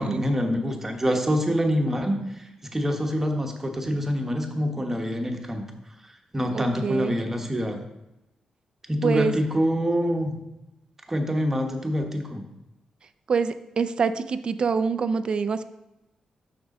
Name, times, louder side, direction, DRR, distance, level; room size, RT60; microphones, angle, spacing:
voice 1, 0.0-5.6 6.0-7.8 8.9-10.4 11.1-12.4, equal, 15° right, 3 dB, 1.0 m, -26 dB
voice 2, 6.5-7.2 9.0-9.3 13.3-15.6, right 5 dB, 50° right, 12 dB, 0.4 m, -25 dB
6.1 x 6.1 x 4.1 m, 0.94 s
cardioid pair, 115°, 2 cm